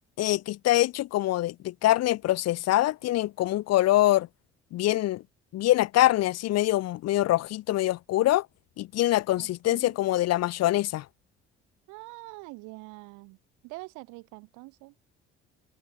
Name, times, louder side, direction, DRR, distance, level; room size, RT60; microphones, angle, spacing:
voice 1, 0.2-4.3 4.7-5.2 5.5-8.5 8.8-11.1, left 15 dB, 55° left, 0.8 m, -24 dB
voice 2, 9.4-9.9 11.9-13.4 13.6-14.9, right 27 dB, 70° right, 2.1 m, -45 dB
open air
hypercardioid pair, 55°, 31 cm